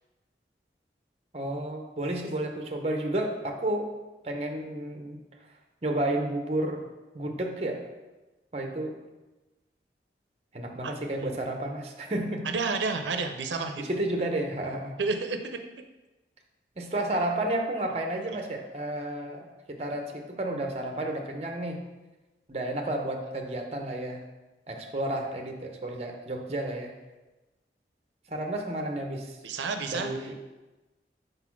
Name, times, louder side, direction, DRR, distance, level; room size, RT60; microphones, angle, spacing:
voice 1, 1.3-3.9 4.2-5.2 5.8-6.9 7.1-7.9 8.5-9.0 10.5-12.4 13.8-15.0 16.8-21.8 22.5-24.2 24.7-26.9 28.3-29.4 29.9-30.4, right 1 dB, 35° right, 3 dB, 0.7 m, -31 dB
voice 2, 10.8-11.3 12.4-13.9 15.0-15.6 29.4-30.1, right 4 dB, 90° right, 6 dB, 0.6 m, -30 dB
5.1 x 4.1 x 5.8 m, 1.1 s
head